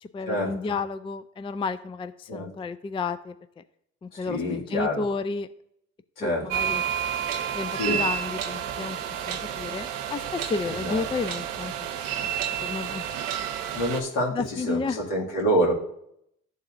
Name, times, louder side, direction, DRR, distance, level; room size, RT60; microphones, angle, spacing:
voice 1, 0.0-3.6 4.0-5.5 6.2-6.8 7.5-9.0 9.3-12.3 12.6-13.1 14.3-15.0, left 4 dB, 15° left, 12 dB, 0.3 m, -32 dB
voice 2, 4.1-5.0 6.2-6.7 7.7-8.0 10.6-11.1 13.1-13.3 13.7-15.7, equal, 80° left, -3 dB, 2.1 m, -27 dB
sound 1, 6.5-14.0, right 9 dB, 90° right, 0.7 m, -30 dB
11.5 x 4.0 x 2.5 m, 0.74 s
supercardioid pair, 60°, 32 cm